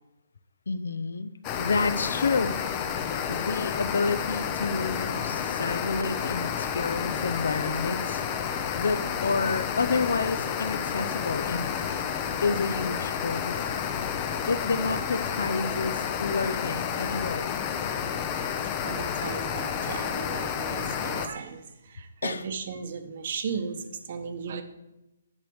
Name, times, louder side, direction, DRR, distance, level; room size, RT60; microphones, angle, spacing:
voice 1, 0.7-2.5 3.3-8.2 8.7-12.0 12.4-13.7 14.5-17.6 22.2-22.5, left 4 dB, 70° left, 12 dB, 0.6 m, -29 dB
sound 1, 1.4-21.3, left 7 dB, 20° left, 0.5 m, -30 dB
voice 2, 18.8-24.6, right 6 dB, 40° right, 8 dB, 0.9 m, -36 dB
11.0 x 6.4 x 3.5 m, 0.95 s
hypercardioid pair, 170°, 0 cm